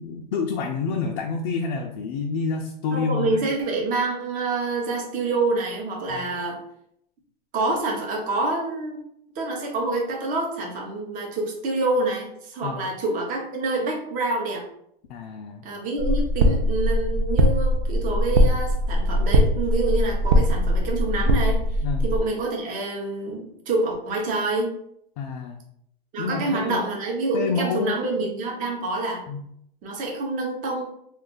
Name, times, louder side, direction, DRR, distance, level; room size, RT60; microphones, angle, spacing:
voice 1, 0.0-3.3 6.1-6.2 12.6-12.8 15.1-15.6 21.8-22.0 25.2-25.6 26.2-26.8 27.3-28.0 29.3-29.4, left 5 dB, 50° left, 2 dB, 0.4 m, -28 dB
voice 2, 2.9-6.6 7.5-9.0 9.3-14.6 15.6-24.7 26.1-29.2 29.8-30.9, right 2 dB, 25° right, -1 dB, 0.8 m, -27 dB
sound 1, 16.0-22.2, equal, 60° right, 0.6 m, -21 dB
2.4 x 2.4 x 3.7 m, 0.72 s
hypercardioid pair, 135°, 29 cm